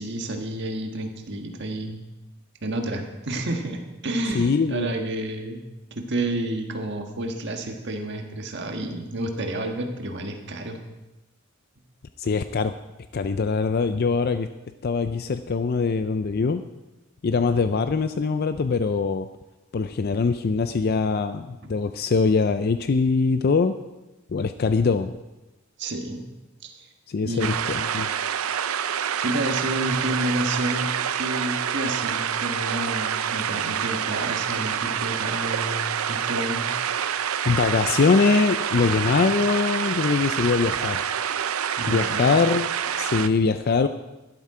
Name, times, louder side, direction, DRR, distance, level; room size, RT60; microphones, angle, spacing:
voice 1, 0.0-2.0 2.6-5.6 5.9-10.8 21.6-21.8 25.8-26.2 26.6-26.9 27.2-27.5 29.2-36.7 41.8-42.3, right 1 dB, 55° right, 4 dB, 1.5 m, -30 dB
voice 2, 4.3-4.9 12.2-12.7 13.1-14.5 14.8-16.6 17.2-19.3 19.7-23.7 24.3-25.1 27.1-28.1 37.5-41.0 41.9-42.7 42.9-43.9, left 4 dB, 45° left, 10 dB, 0.4 m, -22 dB
sound 1, 27.4-43.3, right 8 dB, 85° right, 0.5 m, -27 dB
12.0 x 12.0 x 4.9 m, 1.0 s
head